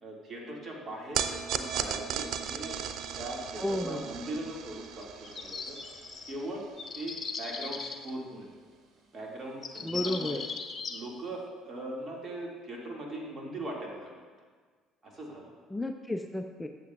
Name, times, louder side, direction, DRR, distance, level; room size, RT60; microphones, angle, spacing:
voice 1, 0.0-2.8 3.2-5.8 6.3-6.6 6.9-8.5 9.1-10.4 10.9-14.3 15.0-15.6, right 1 dB, 35° right, -1 dB, 2.1 m, -40 dB
sound 1, 1.1-7.5, right 8 dB, 55° right, 0.5 m, -37 dB
voice 2, 3.6-4.0 9.8-10.4 15.7-16.7, left 1 dB, 10° left, 5 dB, 0.5 m, -32 dB
sound 2, 4.8-6.4 6.8-8.1 9.3-9.4 9.6-11.0, left 5 dB, 35° left, 0.8 m, -38 dB
14.0 x 7.7 x 2.4 m, 1.5 s
figure-of-eight pair, 55°, 0 cm